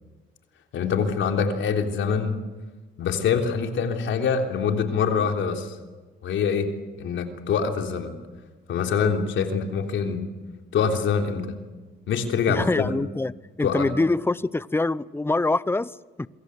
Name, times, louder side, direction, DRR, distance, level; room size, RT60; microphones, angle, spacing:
voice 1, 0.7-2.4 3.0-5.8 6.2-6.7 7.0-8.1 8.7-10.2 10.7-11.5 12.1-12.9 13.6-13.9, left 6 dB, 75° left, 3.5 m, -24 dB
voice 2, 12.5-13.3 13.6-16.3, left 2 dB, 10° left, 0.7 m, -25 dB
27.0 x 23.5 x 8.2 m
cardioid pair, 90°, 20 cm